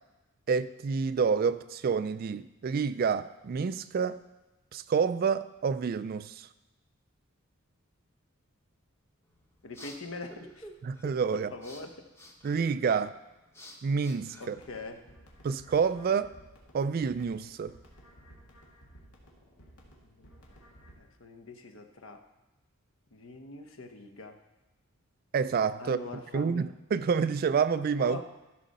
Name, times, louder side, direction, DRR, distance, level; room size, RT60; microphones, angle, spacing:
voice 1, 0.5-4.2 4.7-6.5 10.8-11.5 12.4-13.1 13.8-14.6 15.4-16.3 16.7-17.7 25.3-26.0 26.3-28.2, right 6 dB, 45° right, 14 dB, 0.3 m, -28 dB
sound 1, 9.2-15.1, equal, 10° left, 0.8 m, -52 dB
voice 2, 9.6-10.7 11.3-12.1 14.4-15.0 20.2-20.6 21.0-22.2 23.1-24.4 25.8-26.7 28.0-28.2, left 2 dB, 65° left, 7 dB, 0.9 m, -43 dB
sound 2, 14.5-20.9, equal, 85° left, 2.1 m, -56 dB
14.0 x 6.4 x 4.1 m, 1.0 s
head